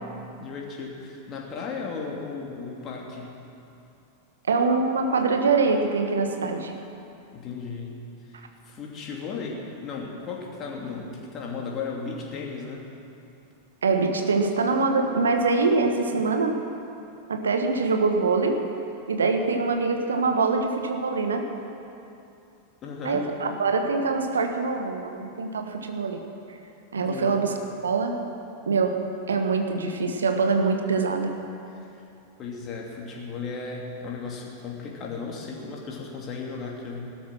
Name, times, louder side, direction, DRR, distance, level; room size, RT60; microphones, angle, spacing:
voice 1, 0.4-3.3 7.3-12.8 22.8-23.3 26.9-27.4 31.8-32.0 32.4-37.1, left 4 dB, 30° left, -1 dB, 2.7 m, -35 dB
voice 2, 4.5-6.7 13.8-16.6 17.3-18.7 19.1-21.5 23.0-26.2 26.9-27.5 27.8-28.1 28.7-29.0 29.3-31.3, right 4 dB, 70° right, 5 dB, 1.4 m, -24 dB
16.0 x 13.0 x 6.2 m, 2.7 s
figure-of-eight pair, 90°, 0 cm